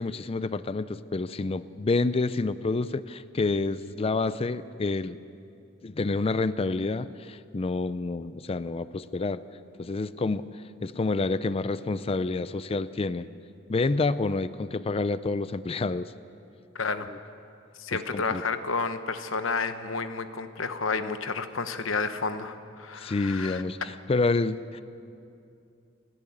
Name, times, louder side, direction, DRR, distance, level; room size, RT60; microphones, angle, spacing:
voice 1, 0.0-5.2 5.8-9.4 9.8-10.5 10.8-13.3 13.7-16.1 17.1-17.2 17.9-18.4 23.0-24.8, left 3 dB, 30° left, 14 dB, 0.4 m, -28 dB
voice 2, 16.7-17.1 17.8-23.6, left 4 dB, 75° left, 10 dB, 1.1 m, -31 dB
29.0 x 11.0 x 8.7 m, 2.6 s
head